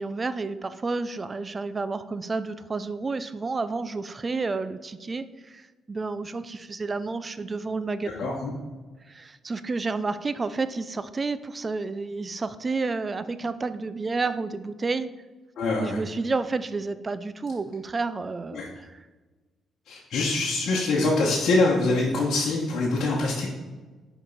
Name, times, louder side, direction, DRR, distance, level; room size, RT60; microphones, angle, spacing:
voice 1, 0.0-8.3 9.1-15.1 15.8-19.0, right 3 dB, 30° right, 13 dB, 0.4 m, -30 dB
voice 2, 8.2-8.5 15.6-16.0 18.5-18.7 19.9-23.5, left 2 dB, 65° left, -4 dB, 1.1 m, -24 dB
5.5 x 4.9 x 4.0 m, 1.3 s
cardioid pair, 90°, 0 cm